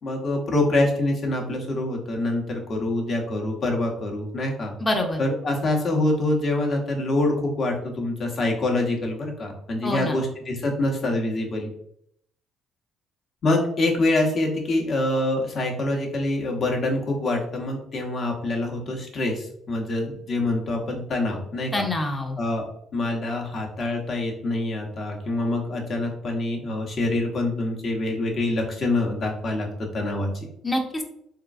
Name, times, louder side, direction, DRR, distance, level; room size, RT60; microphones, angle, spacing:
voice 1, 0.0-4.7 5.2-11.7 13.4-21.9 22.4-22.7 22.9-30.5, left 2 dB, 50° left, 0 dB, 0.9 m, -25 dB
voice 2, 4.8-5.2 9.8-10.2 21.7-22.4 30.6-31.0, left 1 dB, 25° left, 2 dB, 0.6 m, -25 dB
3.7 x 2.3 x 2.4 m, 0.72 s
supercardioid pair, 75°, 0 cm